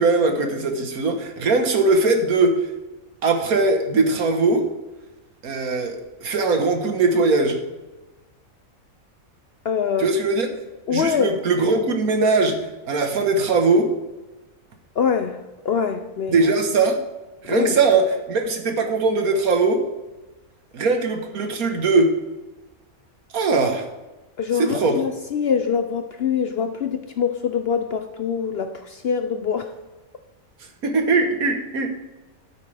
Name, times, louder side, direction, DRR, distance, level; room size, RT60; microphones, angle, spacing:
voice 1, 0.0-2.7 3.2-4.7 5.4-7.6 10.0-10.5 10.9-13.9 16.3-17.0 17.4-19.8 20.7-22.2 23.3-23.9 24.5-25.0 30.8-32.0, right 3 dB, 75° right, 5 dB, 1.8 m, -20 dB
voice 2, 9.6-10.1 10.9-11.4 15.0-16.4 17.5-17.8 24.4-29.7, left 6 dB, 60° left, 8 dB, 0.7 m, -24 dB
12.0 x 9.0 x 3.4 m, 1.1 s
omnidirectional pair, 1.5 m